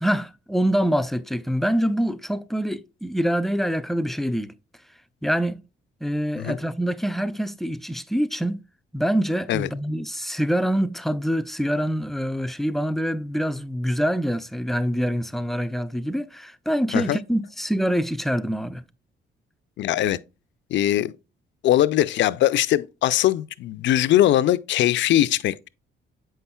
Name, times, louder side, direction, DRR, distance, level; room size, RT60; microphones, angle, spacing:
voice 1, 0.0-4.5 5.2-5.6 6.0-8.6 8.9-18.8, equal, ahead, 0.3 m, -25 dB
voice 2, 19.8-20.2 20.7-21.1 21.6-25.7, left 13 dB, 65° left, 0.4 m, -21 dB
7.7 x 5.5 x 2.2 m
cardioid pair, 90°, 20 cm